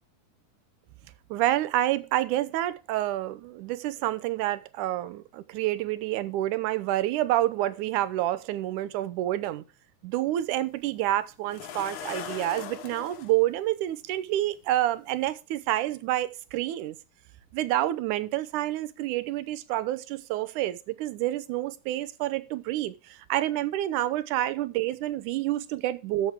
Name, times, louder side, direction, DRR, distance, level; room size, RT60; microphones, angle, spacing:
voice 1, 1.3-9.6 10.0-17.0 17.5-26.3, right 14 dB, 85° right, 2.2 m, -28 dB
sound 1, 10.4-10.5 11.5-13.3 14.5-14.6 15.2-15.3, left 9 dB, 70° left, 1.3 m, -39 dB
12.5 x 7.4 x 3.6 m
omnidirectional pair, 3.6 m